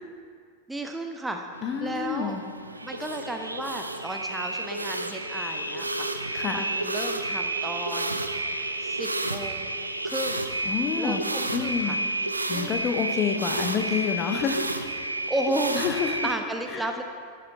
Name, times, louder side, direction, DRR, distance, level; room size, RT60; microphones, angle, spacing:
voice 1, 0.7-1.5 1.8-2.4 2.8-8.2 8.8-9.7 10.0-10.4 11.0-12.0 12.5-12.9 15.3-15.9 16.2-17.0, right 1 dB, 5° right, 4 dB, 0.6 m, -33 dB
sound 1, 1.5-16.4, right 2 dB, 85° right, 0.5 m, -30 dB
voice 2, 1.6-2.4 6.3-6.6 10.7-11.2 11.5-12.0 12.5-14.6 15.7-16.2 16.7-16.9, left 7 dB, 30° left, 6 dB, 0.9 m, -28 dB
11.5 x 9.4 x 4.5 m, 2.1 s
figure-of-eight pair, 90°, 0 cm